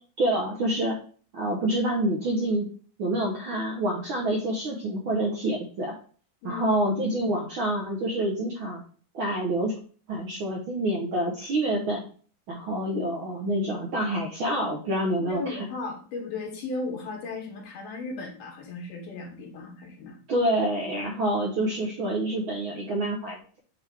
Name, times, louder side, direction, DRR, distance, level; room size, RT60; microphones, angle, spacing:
voice 1, 0.2-1.0 1.3-2.7 3.0-5.9 6.4-8.8 9.1-9.8 10.1-12.0 12.5-15.6 20.3-23.4, right 1 dB, 65° right, -1 dB, 1.2 m, -27 dB
voice 2, 15.2-20.2, left 3 dB, 85° left, 1 dB, 3.0 m, -35 dB
8.8 x 3.5 x 3.4 m, 0.41 s
omnidirectional pair, 3.6 m